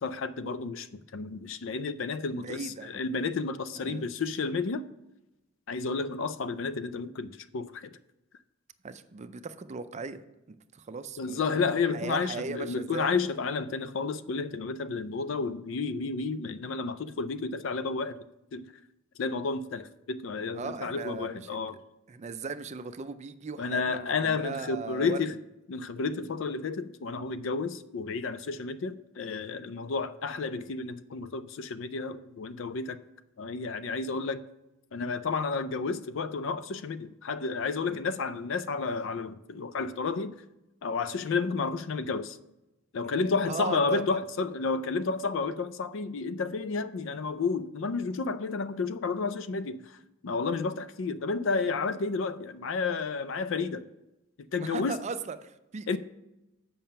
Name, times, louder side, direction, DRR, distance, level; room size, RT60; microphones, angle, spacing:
voice 1, 0.0-0.9 1.1-4.9 5.7-7.9 11.2-18.2 18.5-18.7 19.2-21.8 23.6-25.4 25.7-33.0 33.4-34.4 34.9-40.4 40.8-42.4 42.9-49.8 50.2-53.8 54.5-55.0 55.9-56.0, left 4 dB, 65° left, 0.4 m, -31 dB
voice 2, 2.3-3.0 3.8-4.1 8.8-10.2 10.5-13.1 20.5-21.8 22.1-25.2 37.9-38.1 43.5-44.2 54.6-56.0, right 4 dB, 35° right, 0.4 m, -38 dB
7.5 x 5.5 x 5.5 m
head